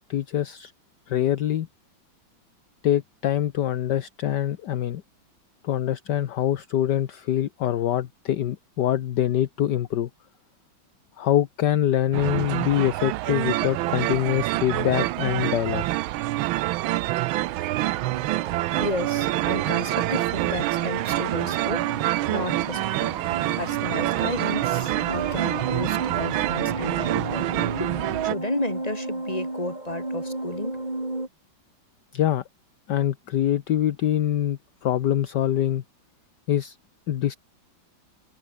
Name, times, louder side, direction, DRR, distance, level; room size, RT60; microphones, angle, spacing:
voice 1, 0.1-0.7 1.1-1.7 2.8-5.0 5.6-10.1 11.2-15.8 32.1-32.4 32.9-35.8 36.5-36.8 37.1-37.4, left 11 dB, 65° left, 1.5 m, -24 dB
sound 1, 12.1-28.3, right 17 dB, 85° right, 1.4 m, -26 dB
sound 2, 17.0-31.3, right 2 dB, 20° right, 3.9 m, -35 dB
voice 2, 18.7-21.9 22.3-23.1 23.6-30.8, left 2 dB, 20° left, 4.1 m, -33 dB
omnidirectional pair, 2.1 m